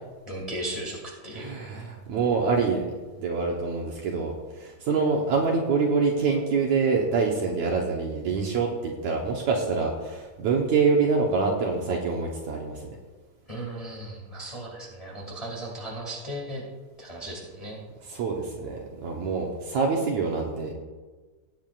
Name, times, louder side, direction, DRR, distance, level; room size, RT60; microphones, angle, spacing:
voice 1, 0.2-1.6 13.5-16.6 17.0-17.8, right 1 dB, 15° left, -2 dB, 1.6 m, -36 dB
voice 2, 1.3-12.9 18.1-20.7, right 4 dB, 65° right, -1 dB, 2.1 m, -26 dB
18.0 x 9.4 x 2.5 m, 1.3 s
omnidirectional pair, 4.0 m